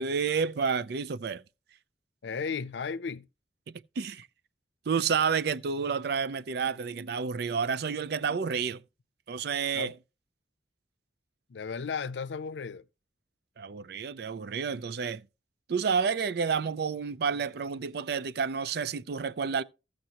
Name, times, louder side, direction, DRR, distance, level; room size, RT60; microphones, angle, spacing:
voice 1, 0.0-1.4 3.7-4.3 4.9-8.8 9.3-9.9 13.6-15.2 15.7-19.6, right 6 dB, 60° right, 0.4 m, -30 dB
voice 2, 2.2-3.3 9.7-9.9 11.5-12.8, left 5 dB, 80° left, 0.5 m, -34 dB
15.5 x 6.6 x 2.9 m
head